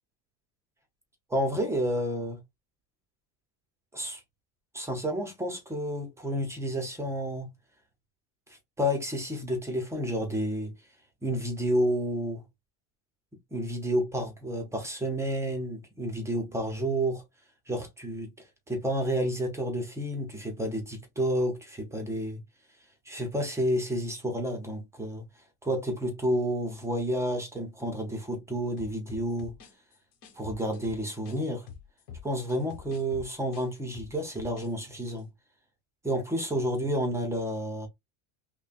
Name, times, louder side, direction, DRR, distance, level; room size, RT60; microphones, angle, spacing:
voice 1, 1.3-2.4 3.9-4.2 4.7-7.5 8.8-10.7 11.2-12.4 13.5-17.2 17.7-18.3 18.7-22.4 23.1-25.2 25.6-29.5 30.4-31.7 32.2-35.3 36.0-37.9, equal, 5° right, 0.6 m, -30 dB
sound 1, 28.8-31.4 31.7-34.7 35.0-35.2, left 7 dB, 60° left, 1.5 m, -46 dB
5.5 x 2.2 x 2.4 m
cardioid pair, 165°, 45 cm